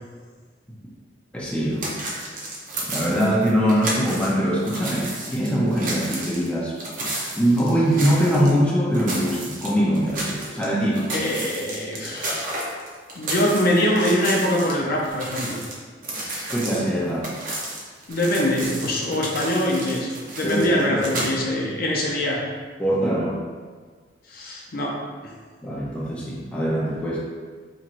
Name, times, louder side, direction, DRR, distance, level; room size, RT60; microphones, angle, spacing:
voice 1, 1.3-2.3 2.8-6.8 7.3-11.0 16.5-17.3 20.4-21.3 22.8-23.4 25.6-27.2, equal, 5° left, -6 dB, 0.6 m, -23 dB
sound 1, 1.8-4.3 4.6-8.6 8.9-10.6 10.9-14.7 15.0-21.3, right 2 dB, 50° right, 0.7 m, -32 dB
voice 2, 11.1-12.5 13.2-15.6 16.1-16.4 18.1-22.4 24.3-24.9 25.2-25.3, left 1 dB, 55° left, -2 dB, 0.6 m, -23 dB
4.3 x 3.0 x 2.5 m, 1.5 s
head